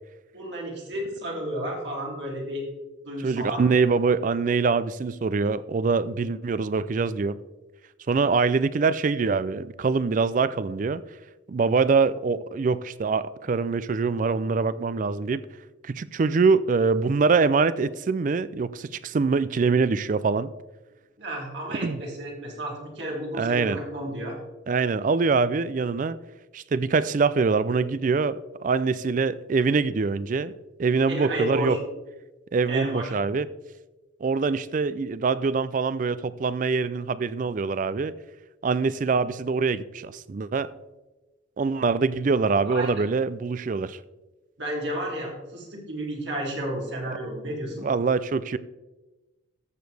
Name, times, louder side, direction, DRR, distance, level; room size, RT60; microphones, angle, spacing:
voice 1, 0.3-2.7 3.0-3.7 21.2-24.4 31.1-31.8 32.7-33.1 42.7-43.0 44.6-47.8, right 1 dB, 65° right, 2.9 m, -32 dB
voice 2, 3.2-7.4 8.1-11.0 11.5-15.4 15.8-20.5 21.8-22.0 23.4-23.8 24.7-26.2 26.5-30.5 30.8-31.8 32.5-33.5 34.2-38.1 38.6-40.7 41.6-44.0 47.8-48.6, right 4 dB, 45° right, 0.4 m, -24 dB
14.0 x 7.0 x 3.3 m
head